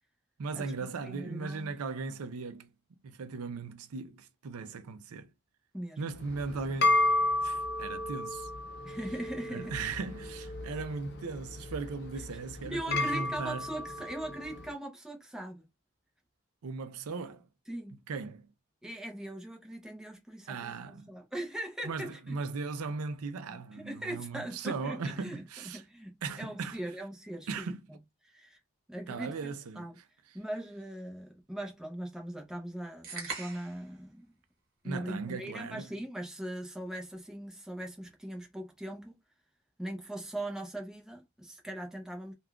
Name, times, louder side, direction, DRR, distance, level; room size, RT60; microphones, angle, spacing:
voice 1, 0.4-2.7 3.0-5.3 6.0-7.0 7.4-8.5 9.5-13.7 16.6-17.5 18.1-18.5 20.5-21.1 21.8-25.8 26.2-26.8 27.5-27.8 29.1-29.9 34.8-35.9, right 4 dB, 85° right, 0.5 m, -38 dB
voice 2, 1.0-1.7 5.7-6.1 8.8-9.8 10.1-10.2 12.6-15.6 17.7-18.0 18.8-22.4 23.5-27.7 28.2-28.6 28.9-30.0 30.3-34.3 34.8-39.2 39.8-42.3, right 1 dB, 5° right, 0.6 m, -40 dB
sound 1, 6.2-14.7, left 2 dB, 50° left, 0.5 m, -33 dB
sound 2, 33.0-33.9, right 4 dB, 45° right, 1.1 m, -40 dB
3.5 x 2.3 x 2.2 m
head